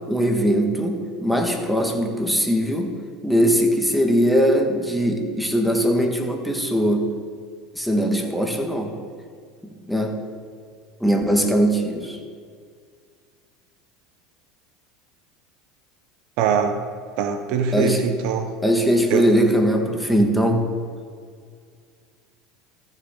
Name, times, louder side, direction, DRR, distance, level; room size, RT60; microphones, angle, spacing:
voice 1, 0.1-2.9 3.2-7.1 7.7-8.9 9.9-10.1 11.0-12.2 17.7-18.2 18.6-20.6, equal, ahead, 2 dB, 1.6 m, -20 dB
voice 2, 16.4-16.8 17.2-18.5 19.1-19.3, right 6 dB, 65° right, 8 dB, 0.8 m, -22 dB
14.0 x 7.2 x 3.8 m, 2.1 s
hypercardioid pair, 90°, 0 cm